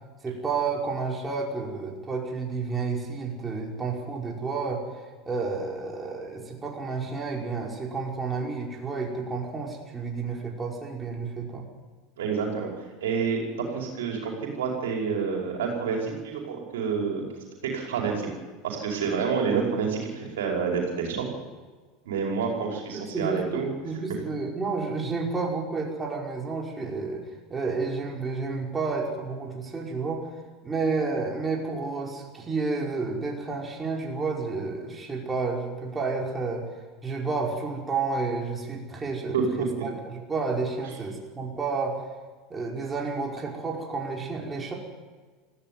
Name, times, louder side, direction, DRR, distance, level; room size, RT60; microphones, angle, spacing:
voice 1, 0.2-4.8 5.3-11.7 22.9-27.2 27.5-30.4 30.6-36.7 37.0-42.0 42.5-44.7, right 4 dB, 20° right, -1 dB, 5.1 m, -30 dB
voice 2, 12.2-12.7 13.0-13.4 13.7-17.2 17.7-18.3 18.6-21.3 22.1-23.7 39.3-39.7, right 5 dB, 85° right, 0 dB, 5.2 m, -28 dB
19.0 x 15.0 x 9.6 m, 1.4 s
hypercardioid pair, 95°, 0 cm